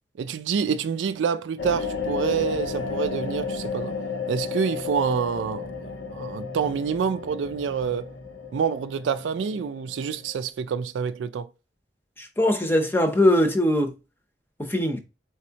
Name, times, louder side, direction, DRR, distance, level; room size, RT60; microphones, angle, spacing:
voice 1, 0.2-3.9 4.3-5.7 6.1-8.1 8.5-11.5, right 6 dB, 90° right, 0.3 m, -27 dB
sound 1, 1.6-10.5, left 5 dB, 90° left, 0.8 m, -33 dB
voice 2, 12.2-14.0 14.6-15.0, left 1 dB, 10° left, 0.6 m, -21 dB
4.2 x 3.5 x 2.8 m
head